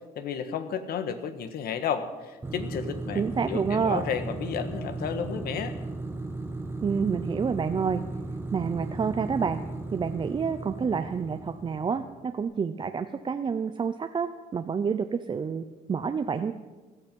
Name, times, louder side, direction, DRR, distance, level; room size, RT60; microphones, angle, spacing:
voice 1, 0.1-5.8, left 7 dB, 65° left, 10 dB, 1.4 m, -32 dB
sound 1, 2.4-12.2, right 2 dB, 15° right, 1.3 m, -36 dB
voice 2, 3.2-4.0 6.8-8.0 8.5-9.6 9.9-16.5, right 6 dB, 30° right, 8 dB, 0.6 m, -28 dB
16.0 x 12.0 x 5.4 m, 1.3 s
cardioid pair, 110°, 17 cm